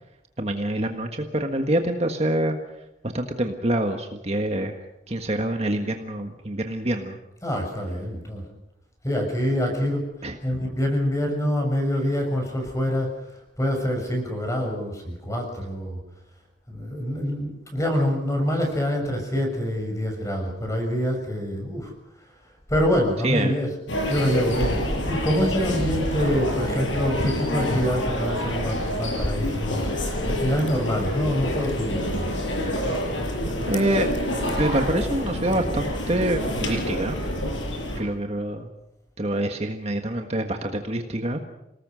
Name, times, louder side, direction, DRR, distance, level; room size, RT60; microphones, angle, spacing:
voice 1, 0.4-2.6 3.0-4.8 5.1-7.2 10.2-10.4 23.2-23.5 33.7-34.1 34.6-37.2 38.0-38.7 39.2-41.4, right 1 dB, 35° right, 4 dB, 1.6 m, -26 dB
voice 2, 7.4-8.4 9.0-10.1 10.4-16.0 16.7-21.9 22.7-23.8 24.1-29.8 30.2-32.3, equal, 15° left, 2 dB, 6.6 m, -25 dB
sound 1, 23.9-38.0, left 1 dB, 85° left, 6.2 m, -27 dB
28.0 x 19.0 x 6.4 m, 0.87 s
head